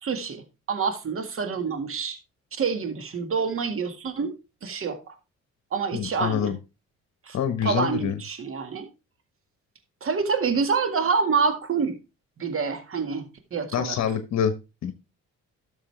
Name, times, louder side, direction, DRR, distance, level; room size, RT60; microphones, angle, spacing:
voice 1, 0.0-2.2 2.5-4.3 4.6-5.2 5.7-6.5 7.2-8.9 10.0-12.0 12.4-13.9, right 5 dB, 45° right, 1.9 m, -27 dB
voice 2, 5.9-6.6 7.3-8.2 13.7-14.5 14.8-14.9, left 8 dB, 60° left, 1.2 m, -26 dB
12.5 x 6.7 x 3.3 m
cardioid pair, 90°, 30 cm